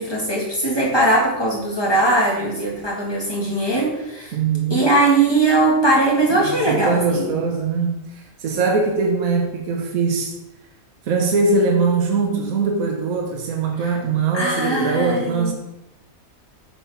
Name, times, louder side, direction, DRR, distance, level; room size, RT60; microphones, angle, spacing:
voice 1, 0.0-4.3 4.7-7.3 14.3-15.5, right 2 dB, 20° left, -4 dB, 1.8 m, -20 dB
voice 2, 4.3-4.8 6.3-10.3 11.0-15.5, right 4 dB, 75° right, 2 dB, 1.3 m, -21 dB
7.2 x 4.3 x 5.6 m, 0.92 s
omnidirectional pair, 1.5 m